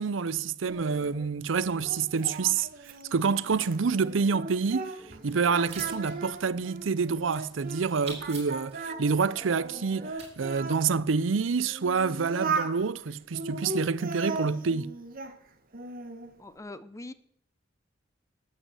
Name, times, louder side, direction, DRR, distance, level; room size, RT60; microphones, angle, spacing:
voice 1, 0.0-2.7 3.1-4.9 5.2-14.9, right 5 dB, 80° right, 0.6 m, -27 dB
Singing, 0.7-5.2 5.5-7.8 8.2-10.8 11.4-12.8 13.3-15.4 15.7-16.3, right 4 dB, 50° right, 1.4 m, -37 dB
sound 1, 5.0-6.3 8.9-10.1, right 2 dB, 20° right, 3.6 m, -49 dB
sound 2, 5.2-11.3, right 4 dB, 35° right, 5.5 m, -47 dB
voice 2, 16.4-17.1, left 2 dB, 15° left, 0.6 m, -42 dB
12.5 x 8.6 x 8.0 m
head